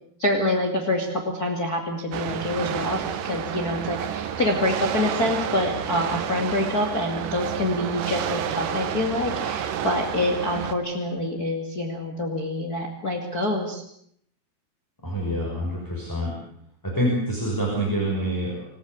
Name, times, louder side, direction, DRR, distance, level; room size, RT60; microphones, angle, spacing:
voice 1, 0.2-13.8, left 1 dB, 25° left, 1 dB, 2.4 m, -26 dB
sound 1, 2.1-10.7, right 9 dB, 65° right, 2.5 m, -30 dB
voice 2, 15.0-16.3 16.8-18.7, right 1 dB, 5° left, -2 dB, 6.1 m, -26 dB
27.0 x 15.5 x 8.3 m, 0.68 s
omnidirectional pair, 4.6 m